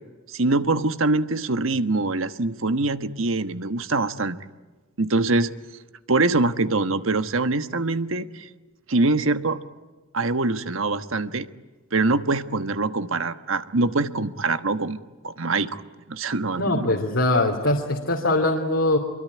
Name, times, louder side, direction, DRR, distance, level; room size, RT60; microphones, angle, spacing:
voice 1, 0.3-4.4 5.0-5.5 6.1-8.5 8.9-9.6 10.1-11.5 11.9-15.0 15.2-15.8 16.1-16.9, right 3 dB, 75° right, 11 dB, 1.3 m, -24 dB
voice 2, 16.6-19.0, left 2 dB, 70° left, 1 dB, 2.9 m, -22 dB
25.5 x 23.0 x 9.6 m, 1.2 s
head